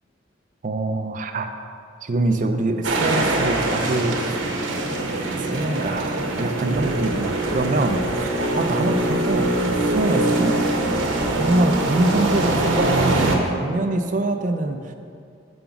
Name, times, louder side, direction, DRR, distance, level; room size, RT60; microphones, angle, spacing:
voice 1, 0.6-1.5 2.0-4.4 5.4-10.6 11.4-14.9, right 2 dB, 40° right, 6 dB, 0.4 m, -24 dB
sound 1, 2.8-13.4, right 2 dB, 75° right, 0.9 m, -23 dB
6.9 x 3.8 x 5.8 m, 2.4 s
head